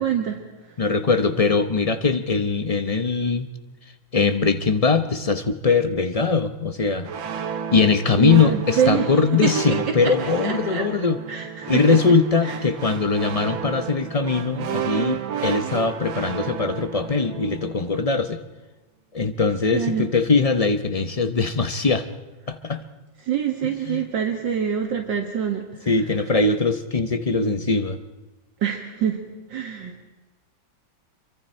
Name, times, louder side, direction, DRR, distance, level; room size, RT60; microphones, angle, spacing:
voice 1, 0.0-0.8 8.2-9.5 10.0-10.1 10.4-10.9 11.3-12.0 12.4-12.5 19.7-20.1 23.2-25.9 28.6-29.2 29.5-30.1, right 8 dB, 70° right, 2 dB, 2.2 m, -25 dB
voice 2, 0.8-3.5 4.1-7.1 7.7-11.2 11.7-18.4 19.1-22.1 22.5-22.8 23.9-24.0 25.9-28.0, left 4 dB, 50° left, 9 dB, 0.4 m, -21 dB
sound 1, 7.0-18.0, right 8 dB, 85° right, 1.9 m, -32 dB
27.0 x 24.0 x 4.4 m, 1.1 s
omnidirectional pair, 2.1 m